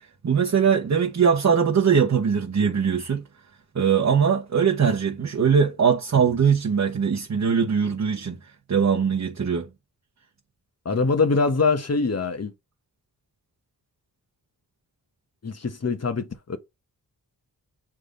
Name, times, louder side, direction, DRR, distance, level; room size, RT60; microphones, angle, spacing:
voice 1, 0.2-3.2 3.7-8.4 8.7-9.7, right 6 dB, 45° right, 1.0 m, -21 dB
voice 2, 10.8-12.5 15.4-16.6, left 4 dB, 40° left, 1.2 m, -23 dB
6.7 x 3.7 x 3.8 m
wide cardioid pair, 80°, 38 cm